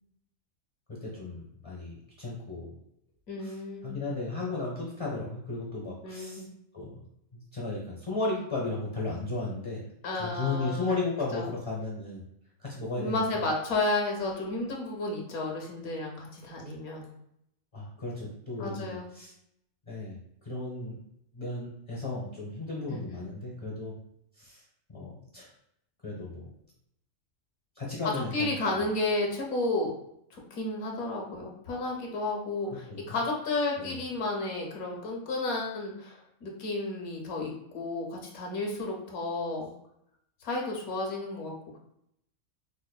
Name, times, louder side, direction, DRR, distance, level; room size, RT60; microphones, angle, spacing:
voice 1, 0.9-2.7 3.4-3.5 3.8-6.4 6.7-6.9 7.3-9.8 10.2-12.2 12.6-13.5 17.7-19.3 19.9-21.0 21.3-24.0 24.4-24.6 24.9-25.5 26.0-26.4 27.8-28.5 32.7-33.2 33.8-34.0, left 3 dB, 35° left, -5 dB, 0.5 m, -35 dB
voice 2, 3.3-4.0 6.0-6.5 10.0-11.0 11.3-11.5 13.0-17.1 18.6-19.1 22.9-23.3 28.0-29.9 30.3-39.7 40.4-41.8, left 2 dB, 90° left, -1 dB, 1.3 m, -32 dB
4.9 x 2.1 x 2.3 m, 0.77 s
omnidirectional pair, 1.4 m